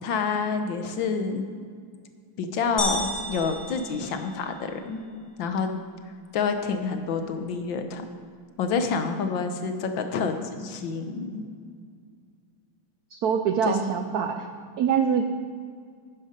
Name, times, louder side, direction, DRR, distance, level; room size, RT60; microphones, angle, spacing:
voice 1, 0.0-1.5 2.4-5.0 5.4-5.7 6.3-8.1 8.6-11.4 13.7-13.8, left 5 dB, 70° left, 7 dB, 1.5 m, -28 dB
sound 1, 2.8-4.7, left 1 dB, 35° left, 2.9 m, -32 dB
voice 2, 13.1-14.5 14.8-15.3, right 7 dB, 75° right, 6 dB, 0.8 m, -24 dB
11.5 x 9.5 x 5.1 m, 2.1 s
omnidirectional pair, 2.3 m